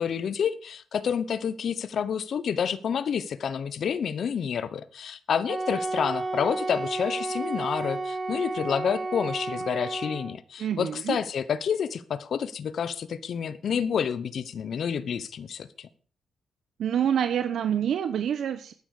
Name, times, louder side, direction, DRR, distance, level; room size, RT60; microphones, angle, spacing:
voice 1, 0.0-15.9, left 7 dB, 60° left, 13 dB, 1.0 m, -29 dB
Wind instrument woodwind instrument, 5.5-10.4, right 2 dB, 30° right, 1.7 m, -32 dB
voice 2, 10.6-11.2 16.8-18.7, right 9 dB, 70° right, 11 dB, 0.9 m, -27 dB
12.0 x 9.6 x 6.7 m, 0.43 s
cardioid pair, 100°, 0 cm